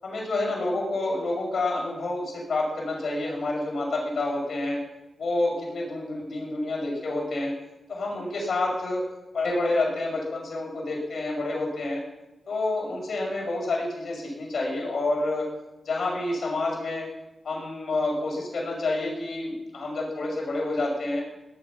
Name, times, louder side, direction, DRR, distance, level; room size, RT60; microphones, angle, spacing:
voice 1, 0.0-4.8 5.2-7.5 7.9-9.1 9.3-12.0 12.5-15.5 15.8-17.0 17.4-21.2, left 2 dB, 70° left, -2 dB, 6.3 m, -28 dB
18.5 x 11.0 x 6.2 m, 1.0 s
cardioid pair, 80°, 0 cm